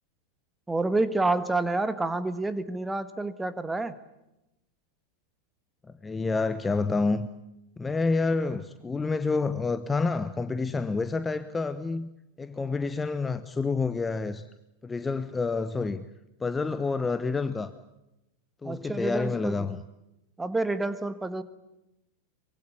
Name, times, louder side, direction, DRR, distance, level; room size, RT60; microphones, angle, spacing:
voice 1, 0.7-3.9 18.6-19.7 20.4-21.4, right 2 dB, 10° right, 13 dB, 1.6 m, -28 dB
voice 2, 5.9-7.3 7.8-12.1 12.4-14.4 14.8-16.1 16.4-17.7 18.6-19.8, left 4 dB, 15° left, 12 dB, 0.9 m, -28 dB
24.5 x 22.5 x 8.5 m, 0.91 s
figure-of-eight pair, 90°, 0 cm